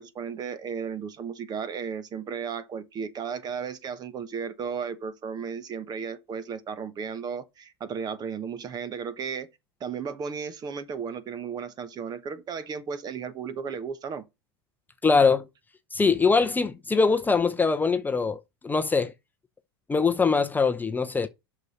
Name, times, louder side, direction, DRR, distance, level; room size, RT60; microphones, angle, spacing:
voice 1, 0.0-9.5 9.8-14.2, right 6 dB, 30° right, 1.1 m, -34 dB
voice 2, 15.0-15.5 15.9-19.1 19.9-21.3, left 4 dB, 15° left, 0.7 m, -22 dB
7.9 x 6.0 x 5.6 m
hypercardioid pair, 95°, 13 cm